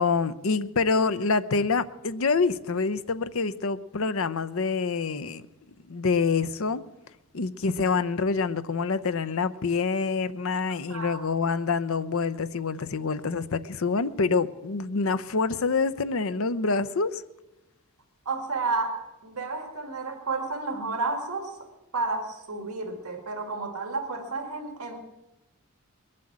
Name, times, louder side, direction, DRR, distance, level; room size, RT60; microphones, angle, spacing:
voice 1, 0.0-5.5 5.9-6.8 7.3-17.2, left 4 dB, 65° left, 0.7 m, -26 dB
voice 2, 10.9-11.2 18.3-21.5 21.9-25.0, right 3 dB, 80° right, 1.9 m, -31 dB
21.0 x 7.6 x 8.7 m
head